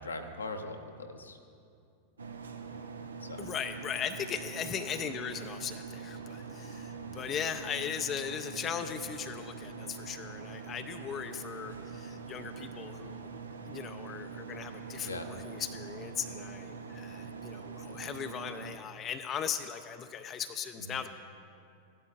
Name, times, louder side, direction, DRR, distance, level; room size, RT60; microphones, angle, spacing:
voice 1, 0.0-1.4 3.2-3.5 7.0-7.3 15.0-15.3 20.8-21.0, left 2 dB, 75° left, 4 dB, 0.8 m, -41 dB
sound 1, 2.2-18.8, right 5 dB, 70° right, 0.6 m, -44 dB
voice 2, 3.4-13.3 13.7-21.1, left 8 dB, 30° left, 8 dB, 0.4 m, -38 dB
15.0 x 12.0 x 2.4 m, 2.5 s
figure-of-eight pair, 90°, 0 cm